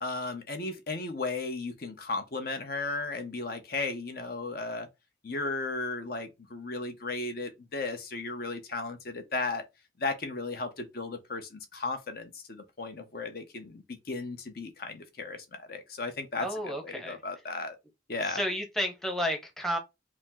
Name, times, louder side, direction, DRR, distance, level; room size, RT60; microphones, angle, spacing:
voice 1, 0.0-4.9 5.2-9.6 10.0-17.7 18.1-18.4, left 3 dB, 50° left, 0.7 m, -35 dB
voice 2, 16.4-17.2 18.3-19.8, equal, ahead, 0.7 m, -31 dB
5.0 x 2.0 x 3.6 m
head